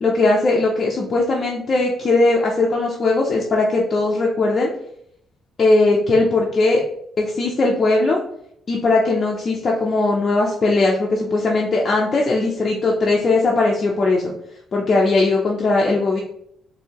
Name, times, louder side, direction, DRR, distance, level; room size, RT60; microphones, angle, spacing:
voice 1, 0.0-4.7 5.6-6.8 7.2-8.2 8.7-14.3 14.7-16.2, left 2 dB, 30° left, -2 dB, 0.5 m, -19 dB
4.5 x 2.7 x 2.9 m, 0.71 s
cardioid pair, 160°, 0 cm